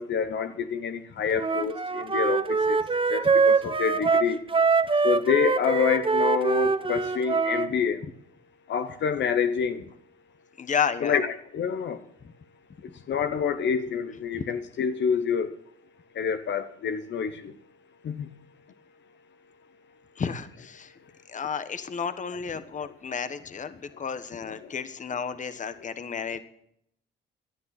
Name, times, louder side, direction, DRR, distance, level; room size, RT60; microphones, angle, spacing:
voice 1, 0.0-2.4 2.7-2.8 3.1-4.4 5.0-8.0 8.7-9.8 11.0-12.0 13.1-15.5 16.2-17.3 18.0-18.1, left 7 dB, 65° left, 9 dB, 1.1 m, -27 dB
Wind instrument woodwind instrument, 1.4-7.7, right 4 dB, 25° right, 1.1 m, -24 dB
voice 2, 10.6-11.3 12.2-12.3 14.3-14.5 20.2-20.9 21.3-26.4, left 6 dB, 40° left, 11 dB, 1.2 m, -32 dB
17.5 x 11.0 x 4.2 m, 0.72 s
cardioid pair, 90°, 20 cm